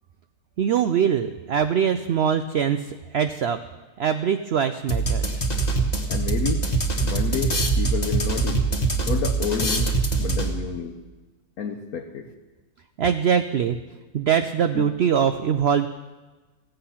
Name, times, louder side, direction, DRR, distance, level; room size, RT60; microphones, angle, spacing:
voice 1, 0.6-3.6 4.0-5.4 13.0-13.8 14.1-15.9, right 8 dB, 75° right, 9 dB, 0.6 m, -22 dB
sound 1, 4.9-10.7, right 3 dB, 30° left, 1.3 m, -23 dB
voice 2, 6.1-6.7 7.0-8.6 9.0-9.9 10.2-10.9 11.6-12.3 14.7-14.8, left 6 dB, 70° left, 2 dB, 1.3 m, -29 dB
16.5 x 7.9 x 5.7 m, 1.2 s
omnidirectional pair, 1.6 m